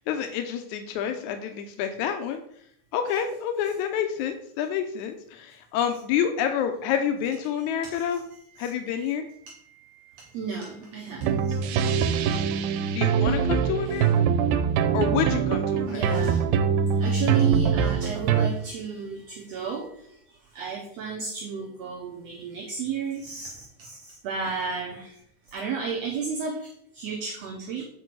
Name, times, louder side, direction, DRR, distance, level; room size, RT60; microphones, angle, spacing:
voice 1, 0.1-2.4 2.9-8.2 8.6-9.3 12.9-14.3 14.9-16.1, left 8 dB, 80° left, 6 dB, 1.7 m, -28 dB
voice 2, 7.6-12.6 13.9-14.1 15.8-25.2 25.5-27.9, right 5 dB, 65° right, 1 dB, 1.7 m, -34 dB
sound 1, 11.2-18.5, right 7 dB, 85° right, 2.4 m, -23 dB
7.8 x 4.6 x 6.1 m, 0.69 s
omnidirectional pair, 4.1 m